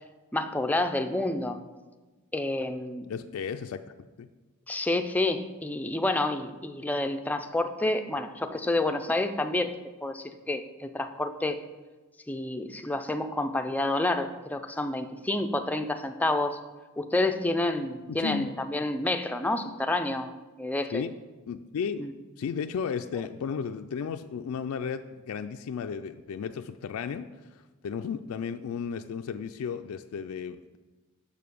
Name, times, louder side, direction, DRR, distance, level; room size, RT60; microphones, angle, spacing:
voice 1, 0.3-1.6 2.3-3.1 4.7-9.7 10.0-11.6 12.3-16.6 17.0-20.3 20.6-21.0 22.0-22.1, left 2 dB, 5° left, 7 dB, 0.4 m, -29 dB
voice 2, 3.1-3.8 4.2-4.3 18.1-18.5 20.9-21.1 21.5-22.1 22.4-30.8, left 6 dB, 75° left, 7 dB, 0.3 m, -34 dB
6.7 x 6.5 x 5.3 m, 1.2 s
head